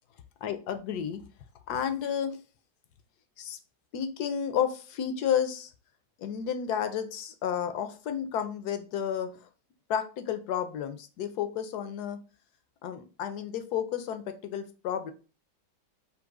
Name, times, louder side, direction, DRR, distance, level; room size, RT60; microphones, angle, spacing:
voice 1, 0.4-1.2 1.7-2.4 3.4-3.6 3.9-5.7 6.2-9.5 9.9-12.2 12.8-15.1, left 8 dB, 75° left, 9 dB, 1.1 m, -31 dB
3.9 x 2.8 x 4.7 m, 0.34 s
omnidirectional pair, 1.8 m